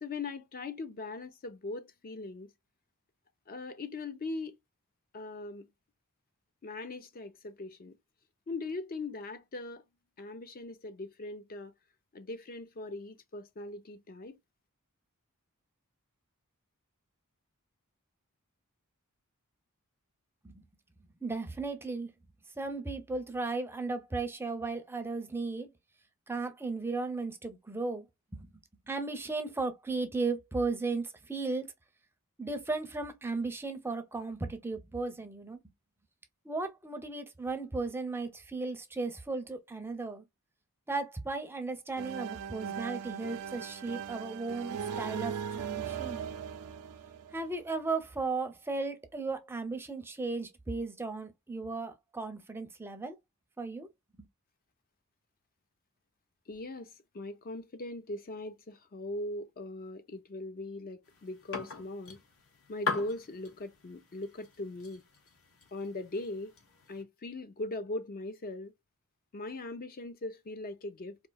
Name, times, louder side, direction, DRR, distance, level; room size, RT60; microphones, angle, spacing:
voice 1, 0.0-2.5 3.5-4.6 5.1-5.7 6.6-8.0 8.5-9.8 10.2-11.7 12.1-14.4 56.5-62.2 62.7-65.0 65.7-66.5 66.9-68.7 69.3-71.2, left 2 dB, 40° left, 0.5 m, -40 dB
voice 2, 21.2-22.1 22.6-25.7 26.3-28.1 28.3-28.5 28.9-31.7 32.4-35.6 36.4-40.2 40.9-46.3 47.3-53.2 53.6-53.9, right 3 dB, 10° right, 0.5 m, -35 dB
sound 1, 42.0-47.7, right 7 dB, 85° right, 0.4 m, -39 dB
sound 2, 61.1-67.0, left 4 dB, 65° left, 1.1 m, -41 dB
4.3 x 2.7 x 2.2 m
head